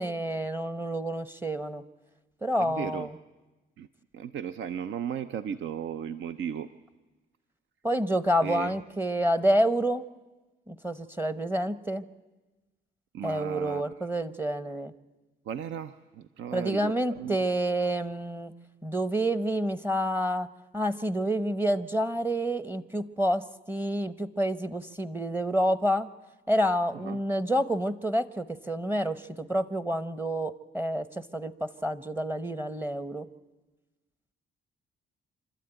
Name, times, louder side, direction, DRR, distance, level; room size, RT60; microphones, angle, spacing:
voice 1, 0.0-1.8 2.4-3.2 7.8-10.0 10.7-12.1 13.2-14.9 16.5-18.5 18.8-20.5 20.7-26.1 26.5-33.3, equal, 10° right, 13 dB, 0.8 m, -28 dB
voice 2, 2.6-3.1 3.8-3.9 4.1-6.7 8.4-8.8 13.1-13.9 15.5-17.4 27.0-27.2, right 8 dB, 75° right, 11 dB, 0.7 m, -35 dB
27.0 x 12.5 x 9.0 m, 1.2 s
cardioid pair, 90°, 20 cm